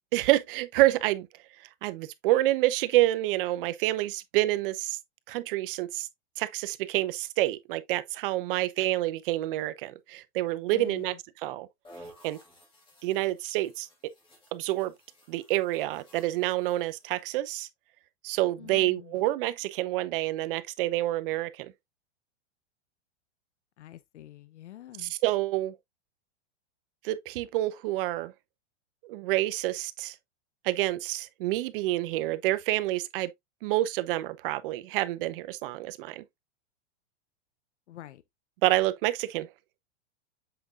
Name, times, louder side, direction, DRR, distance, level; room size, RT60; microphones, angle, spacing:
voice 1, 0.1-1.3 1.8-5.0 5.3-6.1 6.4-11.1 11.4-11.7 12.2-12.4 13.0-14.1 14.5-14.9 15.3-17.7 18.2-21.7 25.0-25.7 27.0-28.3 29.0-30.1 30.6-33.3 33.6-36.2 38.6-39.5, right 16 dB, 50° right, 0.8 m, -28 dB
voice 2, 10.7-11.2 18.6-19.2 23.8-25.1 37.9-38.2, left 13 dB, 85° left, 0.8 m, -46 dB
sound 1, 11.8-17.3, equal, 15° left, 2.8 m, -55 dB
7.9 x 5.2 x 2.4 m
supercardioid pair, 140°, 34 cm